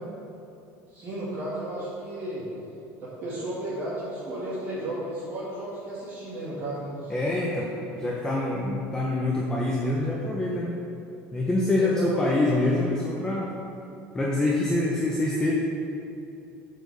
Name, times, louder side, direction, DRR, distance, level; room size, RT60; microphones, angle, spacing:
voice 1, 0.9-2.4 3.0-7.1 11.8-12.6, right 1 dB, 40° right, -8 dB, 2.1 m, -33 dB
voice 2, 7.1-10.8 11.3-13.5 14.1-15.5, left 2 dB, 10° left, -4 dB, 0.9 m, -25 dB
8.4 x 5.2 x 6.8 m, 2.8 s
cardioid pair, 140°, 6 cm